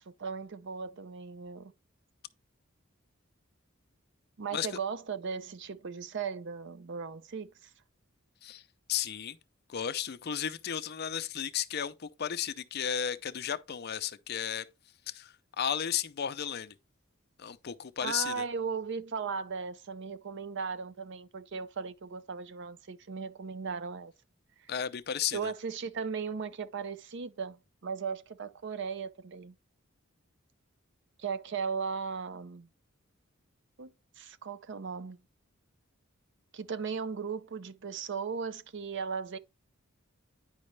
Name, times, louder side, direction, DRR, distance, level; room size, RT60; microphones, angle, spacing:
voice 1, 0.0-1.7 4.4-7.7 18.0-24.1 25.3-29.6 31.2-32.7 33.8-35.2 36.5-39.4, right 5 dB, 60° right, 0.5 m, -37 dB
voice 2, 8.9-9.4 9.7-14.7 15.1-16.7 17.4-18.4 24.7-25.5, left 9 dB, 50° left, 0.5 m, -34 dB
9.6 x 5.2 x 3.2 m
head